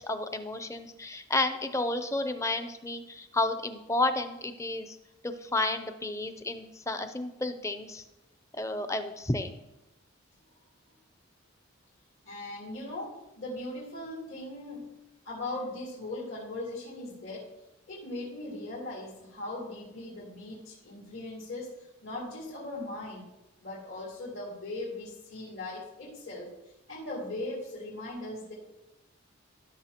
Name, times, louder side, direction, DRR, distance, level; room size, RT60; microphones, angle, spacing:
voice 1, 0.0-5.0 5.2-8.0 8.6-9.5, left 2 dB, 15° left, 8 dB, 0.5 m, -31 dB
voice 2, 12.2-14.8 15.2-17.5 17.9-23.2 23.6-26.5 26.9-28.5, left 2 dB, 70° left, -9 dB, 3.5 m, -39 dB
15.0 x 6.3 x 2.9 m, 0.95 s
head